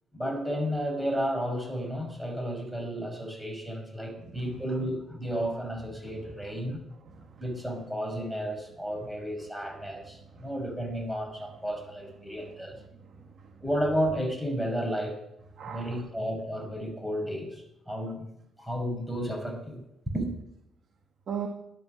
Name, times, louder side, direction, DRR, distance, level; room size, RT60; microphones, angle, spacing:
voice 1, 0.1-6.8 7.4-12.8 13.6-15.2 15.6-18.3 18.6-19.8 20.1-20.3, equal, 5° right, 2 dB, 5.3 m, -32 dB
voice 2, 7.1-7.4 10.4-10.5 12.2-12.5 13.0-13.6 15.6-16.0 21.3-21.5, right 8 dB, 55° right, 3 dB, 1.6 m, -39 dB
12.0 x 12.0 x 6.5 m, 0.83 s
cardioid pair, 90°, 0 cm